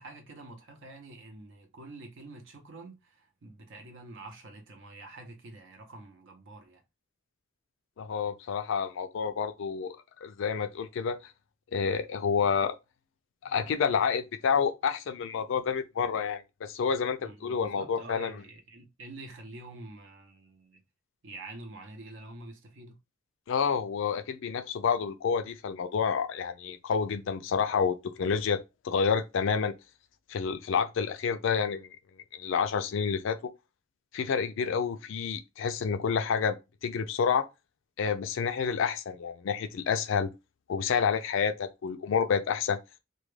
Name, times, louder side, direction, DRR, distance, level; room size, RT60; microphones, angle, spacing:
voice 1, 0.0-6.8 17.2-20.8 21.2-23.0, right 2 dB, 65° right, 0.7 m, -47 dB
voice 2, 8.0-11.2 11.7-12.8 13.4-18.4 23.5-29.7 30.3-32.0 32.3-33.4 34.1-36.6 36.8-37.5 38.0-40.3 40.7-42.8, left 6 dB, 65° left, 0.4 m, -29 dB
2.2 x 2.2 x 3.1 m
head